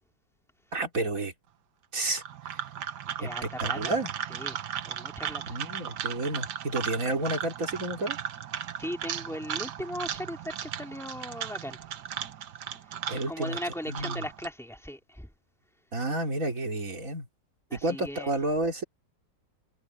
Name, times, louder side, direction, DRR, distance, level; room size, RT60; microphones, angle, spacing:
voice 1, 0.7-1.3 1.9-2.2 3.2-3.3 3.6-4.1 5.5-8.2 13.1-13.6 13.9-14.2 15.9-17.3 17.7-18.8, right 2 dB, 45° right, 3.7 m, -30 dB
sound 1, 2.1-14.5, right 9 dB, 65° right, 1.6 m, -36 dB
voice 2, 3.2-4.0 4.3-5.6 8.8-11.8 13.1-15.3 17.7-18.3, equal, ahead, 2.6 m, -38 dB
omnidirectional pair, 2.0 m